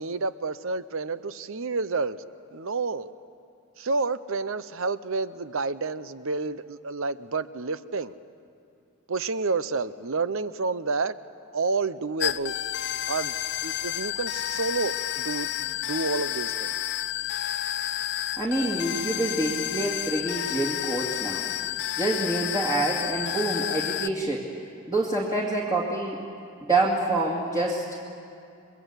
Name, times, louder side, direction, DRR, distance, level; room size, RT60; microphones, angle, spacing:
voice 1, 0.0-2.2 2.5-3.1 3.8-8.1 9.1-11.2 11.5-12.6 13.1-13.3 13.6-16.8, right 4 dB, 65° right, 14 dB, 0.8 m, -29 dB
sound 1, 12.2-24.1, left 12 dB, 55° left, 0.6 m, -30 dB
voice 2, 18.4-21.4 22.0-24.5 24.9-26.2 26.6-27.9, right 2 dB, 20° right, -3 dB, 2.4 m, -27 dB
29.5 x 22.5 x 8.3 m, 2.5 s
head